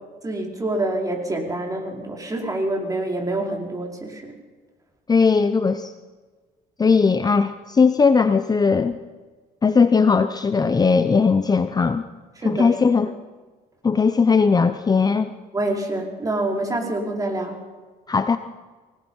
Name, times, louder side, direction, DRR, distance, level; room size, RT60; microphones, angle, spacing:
voice 1, 0.2-4.3 12.4-12.7 15.5-17.6, right 2 dB, 20° right, 1 dB, 4.9 m, -26 dB
voice 2, 5.1-5.9 6.8-9.0 9.6-12.0 12.4-13.1 13.8-15.3 18.1-18.4, left 5 dB, 25° left, 10 dB, 0.8 m, -18 dB
24.5 x 19.0 x 5.7 m, 1.4 s
cardioid pair, 110°, 17 cm